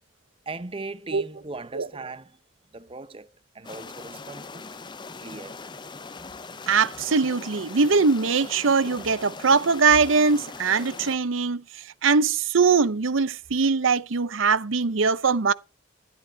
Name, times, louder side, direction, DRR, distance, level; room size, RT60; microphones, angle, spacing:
voice 1, 0.5-2.4 2.7-3.3 3.5-4.8 5.2-5.6, right 3 dB, 30° right, 0.7 m, -38 dB
sound 1, 3.6-11.2, left 4 dB, 25° left, 0.6 m, -41 dB
voice 2, 6.7-11.6 12.0-15.5, right 5 dB, 85° right, 0.7 m, -21 dB
12.0 x 11.0 x 4.6 m
head